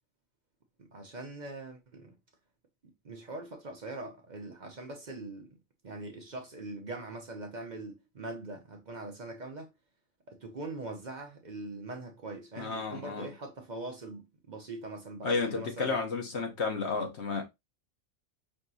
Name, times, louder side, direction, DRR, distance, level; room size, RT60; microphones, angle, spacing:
voice 1, 0.8-2.2 2.8-5.6 5.8-9.7 10.3-16.0, right 2 dB, 45° right, 0.8 m, -42 dB
voice 2, 12.6-13.3 15.2-17.4, left 4 dB, 70° left, 1.4 m, -32 dB
5.3 x 2.9 x 2.6 m
omnidirectional pair, 1.2 m